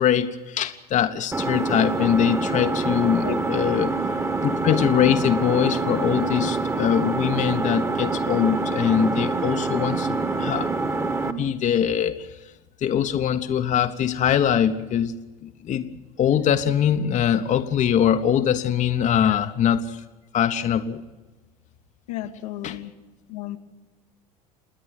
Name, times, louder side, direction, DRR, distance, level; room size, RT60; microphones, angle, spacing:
voice 1, 0.0-3.9 4.4-10.7 11.2-12.3 12.8-15.1 15.4-15.9 16.2-20.0 20.3-21.0 22.6-22.8, left 9 dB, 40° left, 9 dB, 1.1 m, -22 dB
Engine, 1.3-11.3, right 3 dB, 15° right, 1.6 m, -26 dB
voice 2, 3.2-3.9 19.2-19.5 22.1-22.9 23.3-23.6, left 12 dB, 75° left, 5 dB, 1.4 m, -33 dB
28.0 x 10.0 x 9.5 m, 1.2 s
hypercardioid pair, 75°, 19 cm